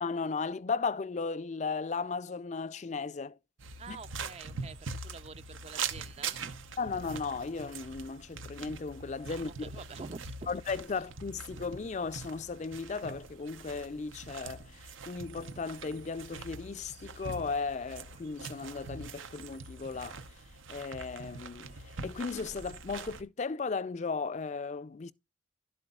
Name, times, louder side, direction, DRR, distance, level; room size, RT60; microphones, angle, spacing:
voice 1, 0.0-3.4 3.9-4.0 6.8-9.7 10.5-20.2 20.7-25.1, left 4 dB, 35° left, 0.3 m, -36 dB
sound 1, 3.6-23.2, right 5 dB, 85° right, 0.8 m, -43 dB
voice 2, 3.8-6.8 9.3-10.5, right 4 dB, 30° right, 0.4 m, -47 dB
11.5 x 7.7 x 2.3 m
head